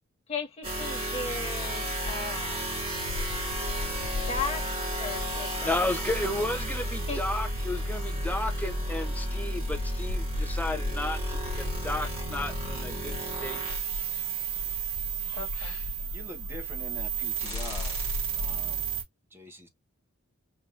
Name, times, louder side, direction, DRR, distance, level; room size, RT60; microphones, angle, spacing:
voice 1, 0.3-2.6 4.3-4.6 5.0-5.9 7.1-7.2 15.3-15.8, left 4 dB, 25° left, 1.5 m, -36 dB
sound 1, 0.6-19.0, right 3 dB, 25° right, 2.0 m, -32 dB
sound 2, 2.1-18.6, left 3 dB, 70° left, 0.5 m, -39 dB
voice 2, 5.6-13.6, left 1 dB, 5° left, 0.6 m, -33 dB
voice 3, 16.1-18.0 18.3-19.0 19.3-19.7, equal, 10° right, 1.0 m, -44 dB
4.7 x 2.9 x 2.5 m
head